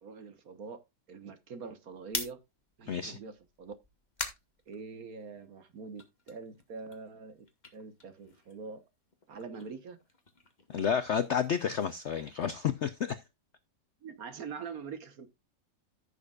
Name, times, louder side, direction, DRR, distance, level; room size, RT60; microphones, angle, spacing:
voice 1, 0.0-2.4 2.8-3.7 4.2-4.3 4.7-7.4 7.7-8.8 9.3-10.0 14.0-15.3, right 5 dB, 55° right, 1.5 m, -44 dB
sound 1, 1.9-5.5 5.8-8.8 9.1-13.2, left 3 dB, 25° left, 1.6 m, -45 dB
voice 2, 2.9-3.2 10.7-13.2, left 7 dB, 65° left, 0.7 m, -30 dB
14.5 x 6.7 x 2.4 m
omnidirectional pair, 1.9 m